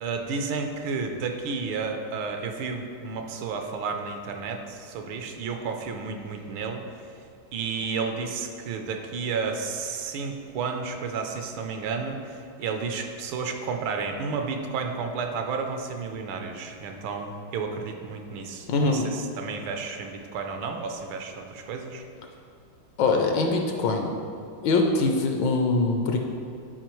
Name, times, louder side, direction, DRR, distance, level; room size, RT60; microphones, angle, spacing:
voice 1, 0.0-6.8 7.5-22.0, right 5 dB, 80° right, 4 dB, 1.4 m, -32 dB
voice 2, 18.7-19.1 23.0-24.1 24.6-26.2, left 3 dB, 75° left, 3 dB, 1.2 m, -23 dB
10.0 x 4.6 x 3.0 m, 2.5 s
omnidirectional pair, 2.3 m